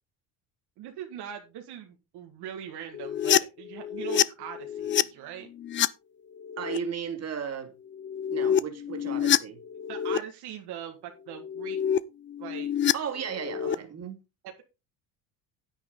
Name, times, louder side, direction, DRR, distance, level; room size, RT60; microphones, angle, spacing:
voice 1, 0.8-5.5 9.9-11.8 12.4-12.7 13.7-13.9, right 9 dB, 65° right, 1.9 m, -41 dB
sound 1, 2.9-5.0 5.5-5.9 6.4-6.8 7.9-10.2 11.3-12.0 12.3-13.8, left 9 dB, 30° left, 0.4 m, -27 dB
voice 2, 6.6-7.7 8.3-9.6 12.9-14.2, right 7 dB, 35° right, 2.6 m, -35 dB
9.8 x 9.2 x 3.9 m
cardioid pair, 110°, 42 cm